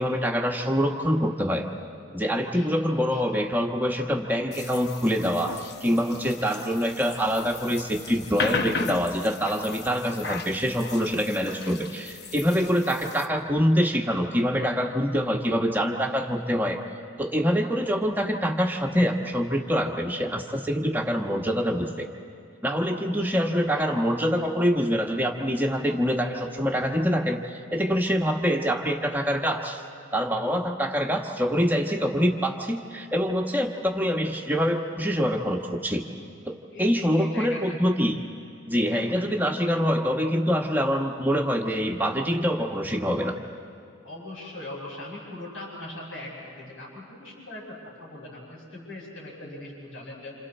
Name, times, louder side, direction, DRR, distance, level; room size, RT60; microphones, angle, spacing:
voice 1, 0.0-1.7 2.1-16.8 17.2-22.1 22.6-29.8 30.1-36.0 36.5-38.2 38.7-43.4, equal, 10° right, 2 dB, 1.3 m, -25 dB
voice 2, 2.3-3.2 6.2-6.6 9.9-10.0 12.9-13.0 21.0-21.1 22.9-23.6 23.9-24.0 36.7-37.6 38.9-39.1 44.0-50.3, left 2 dB, 80° left, -9 dB, 6.1 m, -40 dB
sound 1, 4.5-13.3, left 4 dB, 50° left, 1.0 m, -36 dB
29.5 x 27.5 x 4.3 m, 2.5 s
head